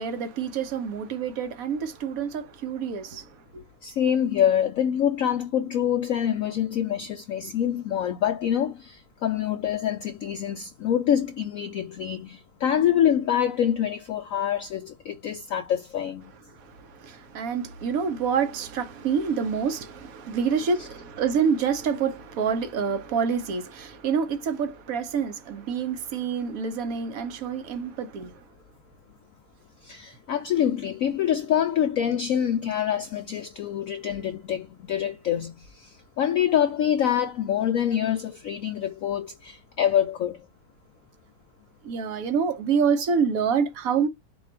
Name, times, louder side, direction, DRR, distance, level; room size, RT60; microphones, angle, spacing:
voice 1, 0.0-3.2 17.0-28.3 41.8-44.1, right 6 dB, 60° right, 1.0 m, -27 dB
voice 2, 3.8-16.3 20.8-20.9 29.8-40.4, left 9 dB, 80° left, 0.7 m, -26 dB
5.1 x 2.4 x 4.2 m
omnidirectional pair, 2.0 m